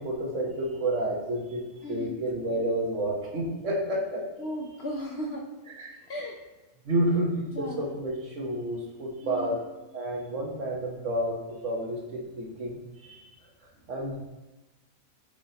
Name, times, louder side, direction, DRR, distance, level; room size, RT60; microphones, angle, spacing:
voice 1, 0.0-1.6 1.9-4.3 5.8-5.9 6.8-9.6 9.9-11.4 11.6-12.7 13.0-13.2 13.9-14.2, right 1 dB, 55° right, -1 dB, 1.3 m, -30 dB
voice 2, 1.8-2.2 4.4-5.4 6.1-6.4 7.5-7.9 9.2-9.6, equal, 60° left, 0 dB, 0.7 m, -35 dB
7.7 x 4.8 x 2.8 m, 1.1 s
omnidirectional pair, 1.6 m